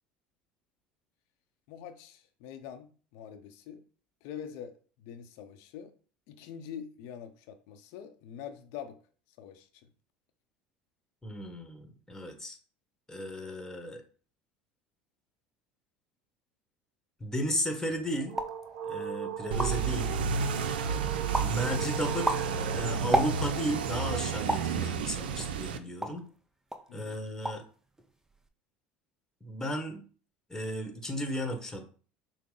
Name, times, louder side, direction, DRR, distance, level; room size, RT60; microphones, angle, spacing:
voice 1, 1.7-3.8 4.2-5.9 6.3-9.0 9.4-9.9 26.9-27.2, left 8 dB, 70° left, 0.7 m, -45 dB
voice 2, 11.2-12.6 13.1-14.0 17.2-18.4 18.9-20.1 21.4-22.2 22.7-26.2 26.9-27.6 29.4-30.0 30.5-31.9, equal, 10° left, 1.2 m, -34 dB
sound 1, 17.9-24.0, right 7 dB, 60° right, 0.8 m, -39 dB
sound 2, 18.3-18.6 19.2-19.3 19.4-20.0 20.4-20.9 21.3-21.6 22.0-23.7 24.5-24.8 25.4-26.3 26.7-26.9 27.2-27.7 28.0-28.5, right 1 dB, 10° right, 0.6 m, -32 dB
sound 3, 19.5-25.8, right 6 dB, 85° right, 0.4 m, -31 dB
5.9 x 2.1 x 3.8 m
hypercardioid pair, 85°, 5 cm